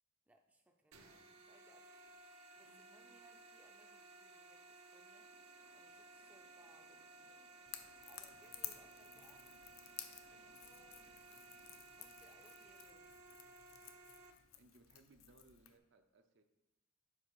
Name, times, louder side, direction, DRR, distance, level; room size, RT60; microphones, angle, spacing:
voice 1, 0.3-5.3 5.7-7.4 8.0-9.5 9.9-11.3 12.0-13.5, right 1 dB, 5° right, 3 dB, 0.5 m, -69 dB
sound 1, 0.9-14.3, right 3 dB, 75° right, 1.0 m, -59 dB
sound 2, 5.2-11.8, equal, 80° left, 2.7 m, -73 dB
Crackle / Crack, 7.7-15.8, left 11 dB, 65° left, 0.6 m, -54 dB
voice 2, 14.5-16.4, right 2 dB, 55° right, 7 dB, 0.6 m, -67 dB
7.5 x 5.2 x 4.8 m, 0.96 s
head